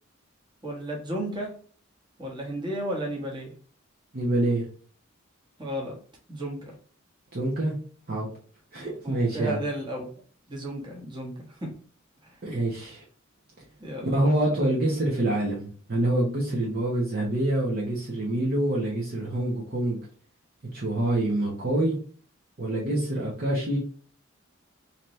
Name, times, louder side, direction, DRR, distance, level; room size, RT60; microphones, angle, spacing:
voice 1, 0.6-1.5 2.2-3.5 5.6-6.0 6.3-6.7 9.0-10.1 10.5-11.3 11.6-11.7 12.2-12.3 13.8-14.7, right 1 dB, 25° right, -2 dB, 1.3 m, -33 dB
voice 2, 4.1-4.6 7.3-7.7 8.1-8.3 8.7-9.6 12.4-13.0 14.0-20.0 20.7-21.9 22.6-23.8, right 1 dB, 45° right, -4 dB, 1.0 m, -26 dB
4.0 x 2.9 x 3.2 m, 0.44 s
head